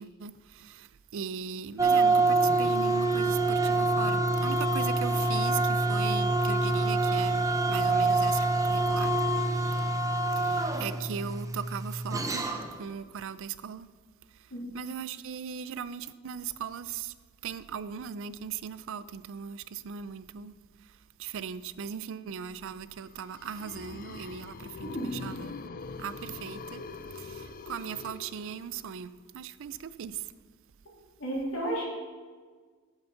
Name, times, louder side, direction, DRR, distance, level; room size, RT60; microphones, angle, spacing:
voice 1, 0.0-9.1 10.4-12.5 12.8-13.9 14.7-17.1 17.4-20.5 21.2-25.5 26.0-26.8 27.1-30.3, right 7 dB, 60° right, 0.4 m, -38 dB
sound 1, 1.8-12.8, right 2 dB, 15° right, 0.7 m, -26 dB
sound 2, 23.0-28.9, left 4 dB, 40° left, 0.4 m, -43 dB
voice 2, 31.2-31.9, right 1 dB, 65° left, 3.3 m, -31 dB
8.0 x 7.9 x 5.8 m
head